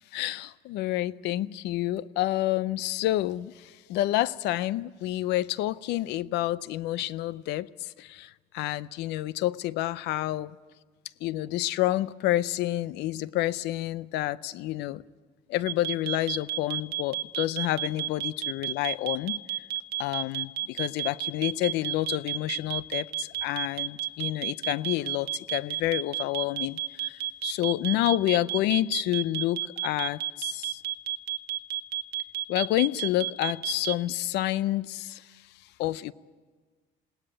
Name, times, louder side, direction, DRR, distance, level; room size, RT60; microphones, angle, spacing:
voice 1, 0.1-10.5 11.2-15.0 15.5-19.4 20.0-30.8 32.5-35.5 35.8-36.1, left 15 dB, 85° left, 0.6 m, -29 dB
sound 1, 15.7-33.9, right 13 dB, 70° right, 1.1 m, -31 dB
21.0 x 17.5 x 10.0 m
cardioid pair, 110°, 17 cm